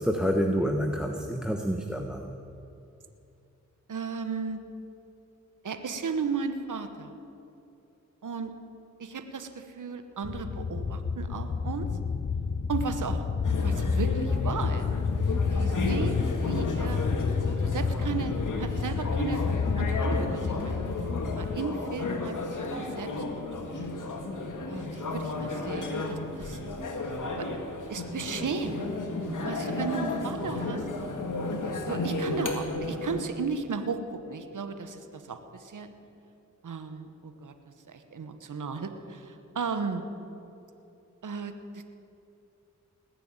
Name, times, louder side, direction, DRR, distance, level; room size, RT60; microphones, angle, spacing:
voice 1, 0.0-2.3, equal, ahead, 3 dB, 1.2 m, -28 dB
voice 2, 3.9-4.6 5.6-7.1 8.2-8.5 9.0-11.9 12.7-13.2 13.6-14.9 15.5-17.1 17.6-19.4 19.8-20.8 21.3-23.9 24.7-26.6 27.3-27.5 27.9-28.8 29.3-30.9 31.9-35.9 36.6-37.5 37.9-40.0 41.2-41.9, right 5 dB, 75° right, 8 dB, 1.2 m, -35 dB
sound 1, 10.2-21.6, left 5 dB, 40° left, 0.7 m, -29 dB
sound 2, 13.4-33.2, left 2 dB, 75° left, 1.8 m, -33 dB
19.5 x 6.9 x 8.9 m, 2.8 s
cardioid pair, 40°, 32 cm